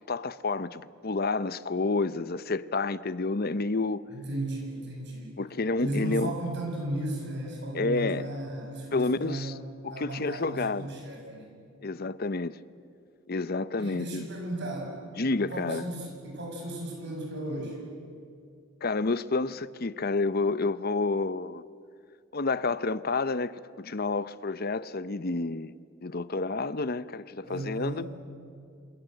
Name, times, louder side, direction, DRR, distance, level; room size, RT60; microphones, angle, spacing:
voice 1, 0.1-4.0 5.4-6.3 7.7-8.3 8.9-9.5 9.8-10.9 11.8-12.6 13.3-14.2 15.2-15.9 18.8-21.6 22.3-25.7 26.0-28.1, left 3 dB, 45° left, 0.7 m, -29 dB
voice 2, 4.1-5.4 5.8-11.5 13.8-15.0 15.4-17.8 27.4-28.1, right 1 dB, 55° right, 7.3 m, -35 dB
27.5 x 27.0 x 7.9 m
head